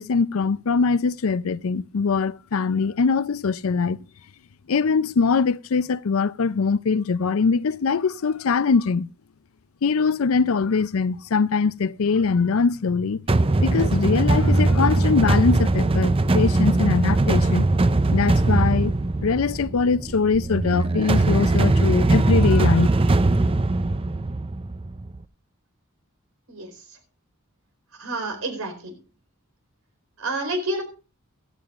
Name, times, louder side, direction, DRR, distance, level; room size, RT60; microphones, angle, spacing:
voice 1, 0.0-4.0 4.7-9.1 9.8-13.2 13.6-17.6 18.1-18.9 19.2-22.9, left 5 dB, 70° left, 0.5 m, -22 dB
sound 1, 13.3-25.2, right 2 dB, 25° right, 0.5 m, -20 dB
voice 2, 26.5-27.0 27.9-28.9 30.2-30.8, right 2 dB, 90° right, 4.4 m, -29 dB
15.5 x 14.5 x 2.5 m
head